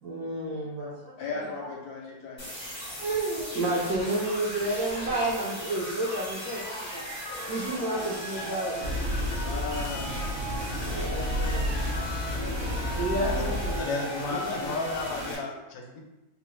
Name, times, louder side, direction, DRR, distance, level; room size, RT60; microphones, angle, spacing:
voice 1, 0.0-1.7 3.0-7.0 7.5-8.8 10.9-11.7 12.6-14.7, right 2 dB, 70° right, -6 dB, 0.9 m, -31 dB
voice 2, 1.2-2.5 9.4-10.2 12.2-12.8 13.1-13.8 14.3-14.4, left 4 dB, 70° left, -1 dB, 1.0 m, -37 dB
sound 1, 2.4-15.3, left 1 dB, 30° left, 0.5 m, -37 dB
sound 2, 8.8-13.8, equal, 85° right, 1.3 m, -31 dB
voice 3, 13.8-16.0, left 3 dB, 85° left, 2 dB, 1.3 m, -33 dB
3.6 x 2.0 x 3.0 m, 1.0 s
omnidirectional pair, 1.9 m